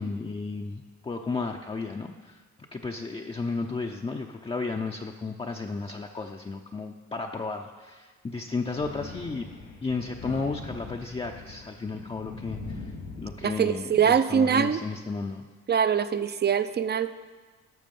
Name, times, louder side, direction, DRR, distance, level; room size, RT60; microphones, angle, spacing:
voice 1, 0.0-2.4 2.7-9.5 9.8-15.4, left 4 dB, 20° left, 1 dB, 0.6 m, -33 dB
Thunder, 8.7-13.8, left 3 dB, 90° left, 3.3 m, -41 dB
voice 2, 13.4-14.8 15.7-17.1, right 7 dB, 35° right, 12 dB, 0.5 m, -23 dB
12.0 x 6.6 x 5.4 m, 1.4 s
cardioid pair, 90°, 30 cm